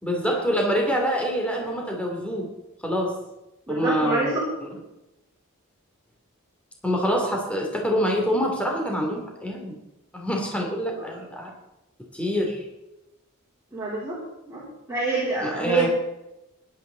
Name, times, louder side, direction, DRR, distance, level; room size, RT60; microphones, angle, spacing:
voice 1, 0.0-2.5 2.8-3.2 3.7-4.4 6.8-9.8 10.1-11.5 12.1-12.6 15.4-15.9, equal, 5° left, 0 dB, 2.9 m, -25 dB
voice 2, 3.7-4.3 10.9-11.2 13.7-14.2 14.5-14.6 14.9-15.9, right 3 dB, 15° right, -6 dB, 3.9 m, -26 dB
16.0 x 12.0 x 4.0 m, 0.94 s
head